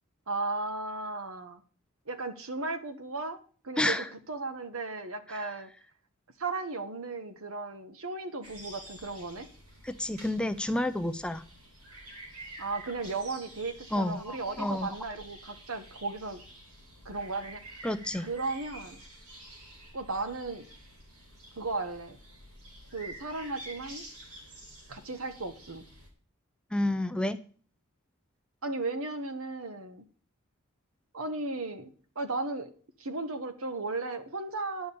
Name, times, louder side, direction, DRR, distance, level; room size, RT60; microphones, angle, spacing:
voice 1, 0.3-1.6 2.1-3.4 3.6-4.0 4.3-5.7 6.4-9.5 12.6-16.4 17.0-17.9 18.2-19.0 19.9-20.6 21.6-22.2 22.9-24.0 24.9-25.8 28.6-30.0 31.1-32.7 33.0-34.9, right 3 dB, 65° right, 10 dB, 1.3 m, -35 dB
voice 2, 3.8-4.1 5.3-5.5 9.8-11.4 13.9-14.9 17.8-18.3 26.7-27.4, left 1 dB, 5° left, 10 dB, 0.4 m, -30 dB
sound 1, 8.4-26.1, right 1 dB, 85° right, 3.7 m, -49 dB
11.0 x 5.1 x 8.5 m, 0.43 s
head